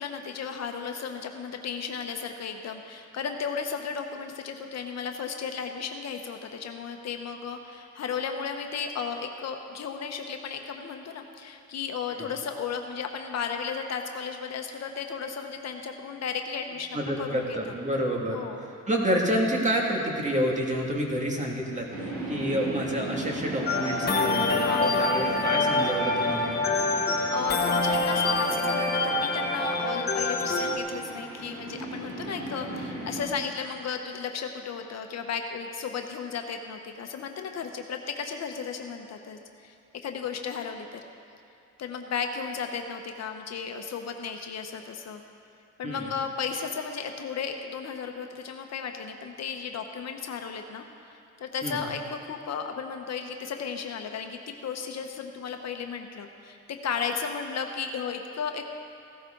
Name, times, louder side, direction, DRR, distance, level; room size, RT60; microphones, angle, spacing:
voice 1, 0.0-16.9 17.2-17.7 18.3-18.6 24.6-25.1 27.3-39.7 40.0-41.0 41.8-45.2 45.8-56.6 56.8-58.7, left 6 dB, 60° left, 5 dB, 1.0 m, -34 dB
voice 2, 16.9-18.4 18.9-21.9 22.3-26.8 45.8-46.1 51.6-51.8, equal, 25° right, -1 dB, 2.2 m, -28 dB
sound 1, 21.9-33.3, right 1 dB, 80° right, 3.0 m, -37 dB
sound 2, 23.7-30.8, left 2 dB, 35° left, 1.4 m, -26 dB
15.5 x 12.5 x 3.9 m, 2.5 s
cardioid pair, 90°, 30 cm